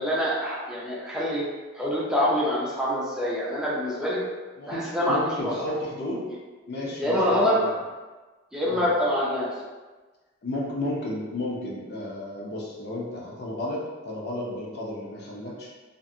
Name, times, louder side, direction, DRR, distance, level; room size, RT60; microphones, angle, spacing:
voice 1, 0.0-1.5 1.7-4.2 4.7-5.5 7.0-7.7 8.5-9.5, equal, 5° right, -7 dB, 0.4 m, -25 dB
voice 2, 5.1-6.2 6.7-7.7 8.7-8.9 10.4-15.7, left 1 dB, 55° left, -4 dB, 0.6 m, -33 dB
2.5 x 2.5 x 2.6 m, 1.3 s
head